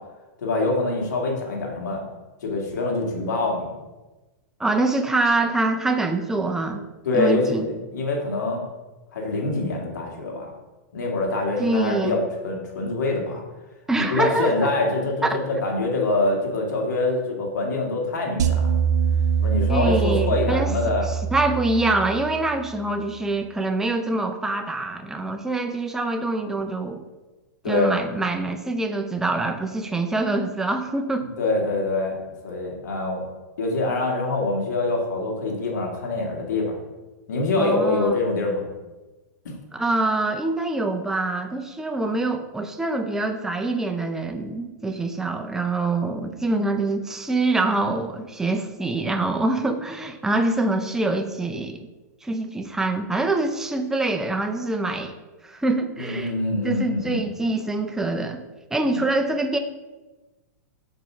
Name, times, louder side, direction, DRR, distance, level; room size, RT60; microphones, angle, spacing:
voice 1, 0.4-2.1 2.4-3.7 7.1-7.6 7.9-8.6 9.1-10.5 10.9-13.4 14.0-18.8 19.4-21.1 27.6-27.9 31.4-33.2 33.6-36.7 37.3-38.7 39.5-39.6 56.0-57.3 58.9-59.0, left 2 dB, 75° left, 0 dB, 1.9 m, -25 dB
voice 2, 4.6-6.8 7.1-7.7 11.6-12.2 13.9-14.7 15.2-15.4 19.7-27.0 27.7-31.3 37.6-38.2 39.7-51.8 52.2-55.1 55.4-56.3 56.6-58.4 58.7-59.6, right 2 dB, 5° right, 4 dB, 0.5 m, -25 dB
sound 1, 18.4-22.7, right 7 dB, 75° right, 0.6 m, -24 dB
5.3 x 4.8 x 5.6 m, 1.1 s
hypercardioid pair, 125°, 10 cm